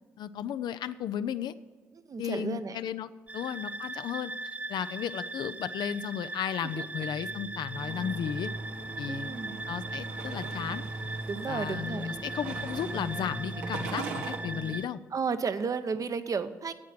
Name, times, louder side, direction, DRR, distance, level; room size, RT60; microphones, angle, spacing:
voice 1, 0.2-1.5 2.2-4.3 4.7-8.5 9.0-9.3 9.7-10.8 11.5-15.0, left 9 dB, 65° left, 13 dB, 0.4 m, -34 dB
voice 2, 2.1-2.8 6.8-7.1 9.1-9.6 11.3-12.2 15.1-16.7, right 5 dB, 45° right, 10 dB, 0.8 m, -33 dB
sound 1, 3.3-14.9, right 2 dB, 15° right, 0.5 m, -38 dB
sound 2, 7.7-14.4, right 5 dB, 85° right, 0.9 m, -43 dB
9.5 x 8.5 x 7.4 m, 1.4 s
hypercardioid pair, 40°, 8 cm